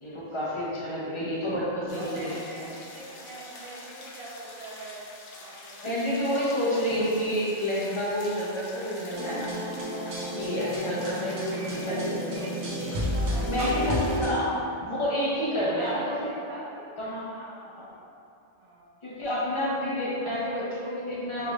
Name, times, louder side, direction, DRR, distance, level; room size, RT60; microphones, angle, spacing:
voice 1, 0.0-2.3 2.6-2.7 5.8-9.5 10.3-12.4 13.5-14.4 14.9-16.3 17.0-17.2 17.8-17.9 19.0-21.5, equal, 30° left, -7 dB, 0.8 m, -29 dB
sound 1, 1.9-14.2, left 2 dB, 80° left, 1.0 m, -46 dB
voice 2, 1.9-5.1 5.4-5.9 10.9-14.4 15.8-18.0 18.6-19.2, right 2 dB, 40° right, -7 dB, 0.9 m, -42 dB
sound 2, 9.1-14.3, equal, 70° right, 1.1 m, -31 dB
5.8 x 3.3 x 2.4 m, 2.6 s
omnidirectional pair, 1.2 m